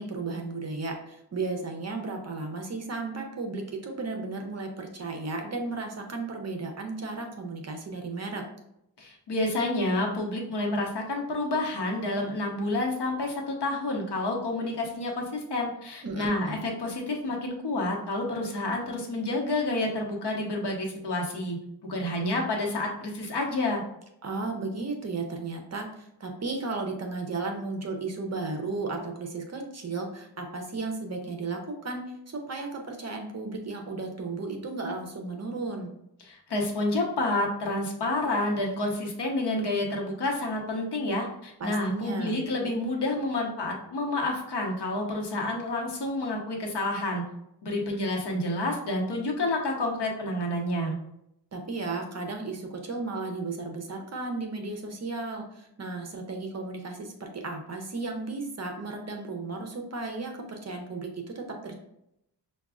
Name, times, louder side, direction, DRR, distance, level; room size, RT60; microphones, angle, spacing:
voice 1, 0.0-8.4 16.0-16.6 24.2-35.9 41.6-42.4 51.5-61.8, right 3 dB, 40° right, 3 dB, 0.6 m, -34 dB
voice 2, 9.0-21.6 21.9-23.8 36.2-47.2 47.6-50.9, left 2 dB, 70° left, 0 dB, 0.9 m, -29 dB
5.8 x 2.3 x 2.4 m, 0.80 s
wide cardioid pair, 150°, 42 cm